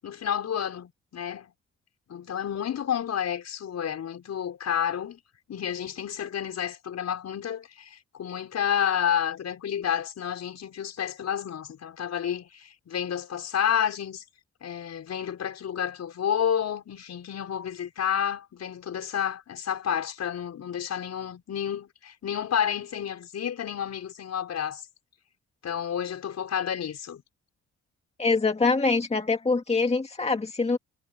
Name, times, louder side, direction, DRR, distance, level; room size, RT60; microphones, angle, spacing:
voice 1, 0.0-1.5 2.1-5.2 5.5-14.2 14.6-24.8 25.6-27.2, left 9 dB, 60° left, 6.1 m, -30 dB
voice 2, 28.2-30.8, left 3 dB, 20° left, 2.0 m, -24 dB
cardioid pair, 90°, 30 cm